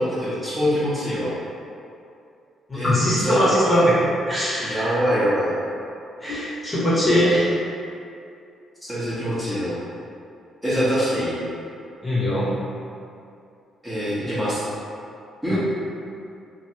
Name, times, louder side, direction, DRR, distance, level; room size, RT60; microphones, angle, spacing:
voice 1, 0.0-1.3 2.7-3.9 4.6-5.5 8.9-9.8 10.6-11.4 13.8-14.6 15.4-15.6, equal, 10° right, -11 dB, 1.1 m, -24 dB
voice 2, 2.7-5.0 6.2-7.6 12.0-12.5 15.5-15.6, equal, 20° left, -10 dB, 1.1 m, -21 dB
3.0 x 2.5 x 2.9 m, 2.5 s
cardioid pair, 90°, 0 cm